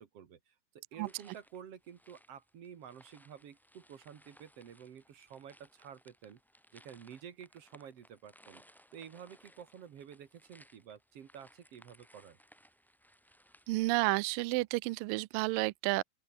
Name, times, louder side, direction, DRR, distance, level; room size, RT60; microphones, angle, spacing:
voice 1, 0.0-6.4 6.7-8.6 8.9-12.4, right 8 dB, 50° right, 2.2 m, -51 dB
sound 1, 1.1-14.0, equal, ahead, 3.9 m, -63 dB
voice 2, 13.7-16.0, right 22 dB, 80° right, 2.0 m, -31 dB
open air
omnidirectional pair, 4.5 m